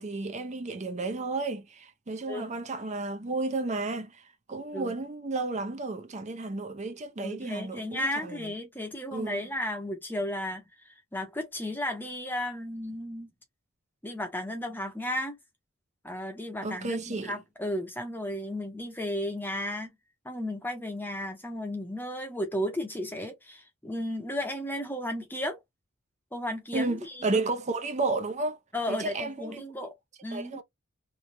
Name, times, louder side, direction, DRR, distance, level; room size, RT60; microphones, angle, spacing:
voice 1, 0.0-8.5 9.1-9.5 16.6-17.4 26.7-28.6 28.9-29.6 30.3-30.6, right 3 dB, 35° right, 0.6 m, -32 dB
voice 2, 7.2-13.3 14.0-15.4 16.0-19.9 20.2-25.6 26.3-27.4 28.7-30.0 30.2-30.6, left 1 dB, 10° left, 0.8 m, -34 dB
3.1 x 2.2 x 2.6 m
head